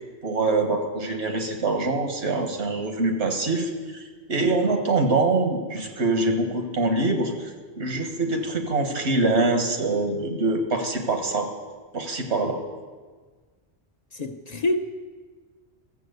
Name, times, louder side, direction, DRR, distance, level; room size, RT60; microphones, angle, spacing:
voice 1, 0.2-4.0 4.3-7.5 7.8-11.5 11.9-12.6, right 3 dB, 85° right, 1.8 m, -24 dB
voice 2, 14.1-14.8, left 2 dB, 40° left, 0.8 m, -26 dB
14.0 x 7.4 x 8.0 m
omnidirectional pair, 1.1 m